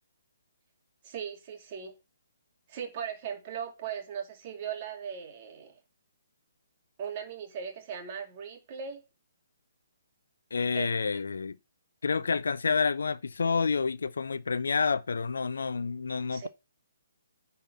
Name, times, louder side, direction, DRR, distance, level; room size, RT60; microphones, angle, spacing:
voice 1, 1.0-2.0 2.7-5.8 7.0-9.0 10.7-10.9 16.3-16.5, right 7 dB, 35° right, 2.5 m, -38 dB
voice 2, 10.5-11.6 12.0-16.5, left 5 dB, 60° left, 0.6 m, -29 dB
9.9 x 4.4 x 5.9 m
figure-of-eight pair, 130°, 0 cm